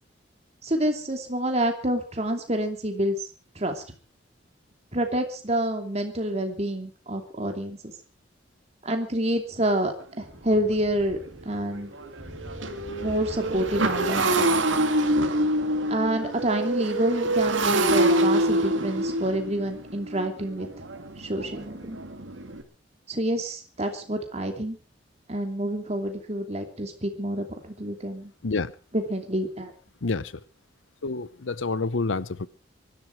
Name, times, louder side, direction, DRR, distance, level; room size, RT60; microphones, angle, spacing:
voice 1, 0.6-3.2 3.6-3.8 4.9-7.8 8.8-11.2 11.4-11.9 13.0-14.9 15.9-20.7 21.2-22.0 23.1-24.8 25.3-28.3 28.9-29.7, right 1 dB, 35° right, 5 dB, 2.8 m, -28 dB
Thunder / Rain, 9.5-21.9, equal, 15° right, 6.0 m, -48 dB
Motorcycle, 10.0-10.1 10.6-10.7 11.0-22.6, right 1 dB, 85° right, 2.3 m, -26 dB
voice 2, 30.0-30.3 31.0-32.5, left 3 dB, 80° left, 18 dB, 0.8 m, -28 dB
24.0 x 12.5 x 4.6 m, 0.36 s
head